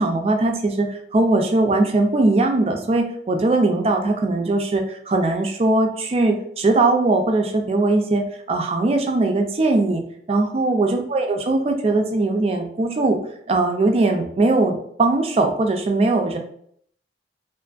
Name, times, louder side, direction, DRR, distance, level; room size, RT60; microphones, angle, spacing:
voice 1, 0.0-10.0 10.3-13.2 13.5-16.4, right 2 dB, 35° right, 4 dB, 0.3 m, -20 dB
2.5 x 2.5 x 2.2 m, 0.66 s
head